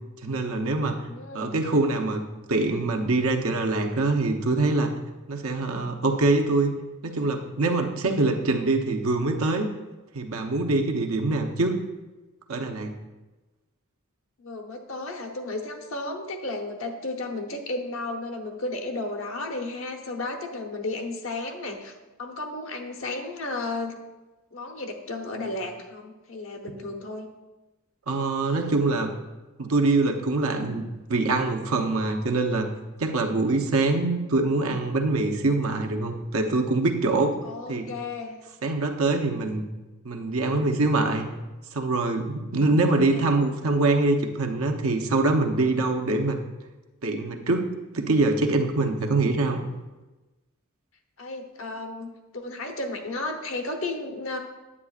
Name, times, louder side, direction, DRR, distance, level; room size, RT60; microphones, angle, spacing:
voice 1, 0.2-1.0 1.3-2.2 2.5-4.9 5.3-6.7 7.0-9.7 10.1-11.8 12.5-12.9 28.1-29.1 29.6-30.8 31.1-32.7 33.0-37.3 37.7-37.9 38.6-39.6 40.0-41.3 41.7-46.4 47.0-49.6, right 2 dB, 80° right, 3 dB, 0.8 m, -24 dB
voice 2, 1.0-1.6 14.4-24.0 24.5-27.3 37.4-38.4 40.4-40.7 42.7-43.3 51.2-54.4, left 2 dB, 70° left, 3 dB, 1.0 m, -34 dB
9.8 x 7.8 x 2.4 m, 1.1 s
head